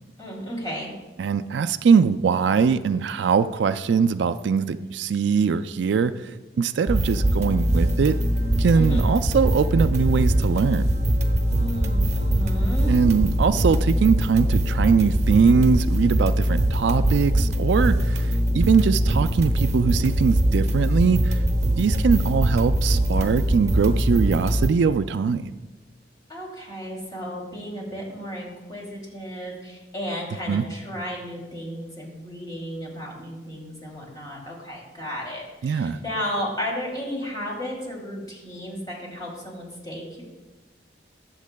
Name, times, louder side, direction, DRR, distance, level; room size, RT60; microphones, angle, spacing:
voice 1, 0.2-0.9 8.7-9.0 11.5-13.0 26.3-40.2, equal, 25° left, -3 dB, 2.7 m, -33 dB
voice 2, 1.2-8.2 8.6-10.9 12.9-21.4 21.8-25.5 30.5-30.6 35.6-36.0, right 5 dB, 75° right, 12 dB, 0.3 m, -22 dB
sound 1, 6.9-24.7, equal, 40° right, 0.8 m, -22 dB
20.0 x 7.3 x 2.2 m, 1.2 s
head